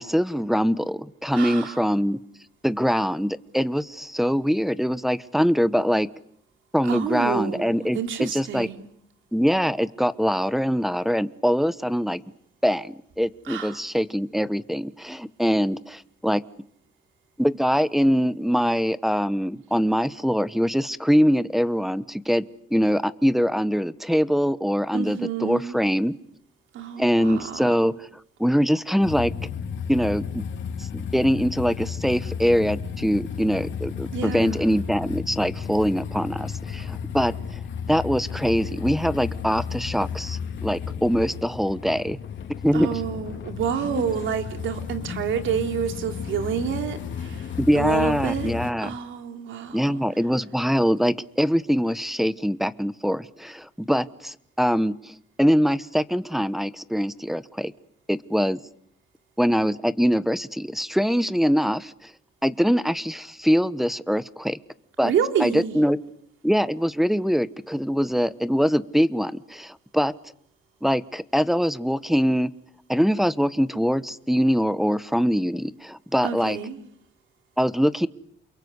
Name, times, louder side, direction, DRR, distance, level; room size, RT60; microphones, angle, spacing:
voice 1, 0.0-2.2 2.6-6.1 6.7-8.7 9.3-12.2 12.6-16.4 17.4-22.4 22.7-26.1 27.0-28.1 28.4-29.3 29.9-30.4 30.9-37.6 37.9-42.2 42.6-43.0 44.0-44.1 47.6-48.9 49.7-55.1 55.4-57.7 58.1-58.6 59.4-62.1 62.4-64.6 65.0-65.1 65.4-66.0 66.4-70.1 70.8-72.5 72.9-76.6 77.6-78.1, equal, ahead, 14 dB, 1.1 m, -23 dB
voice 2, 1.3-1.7 6.9-8.9 13.5-13.8 24.9-25.8 26.7-27.9 34.1-34.8 42.7-47.5 47.7-48.5 48.8-50.0 65.0-65.8 76.2-76.8, right 8 dB, 75° right, 6 dB, 3.2 m, -29 dB
sound 1, 29.0-48.7, left 7 dB, 70° left, 3.6 m, -33 dB
29.0 x 22.0 x 8.1 m, 0.70 s
cardioid pair, 90°, 20 cm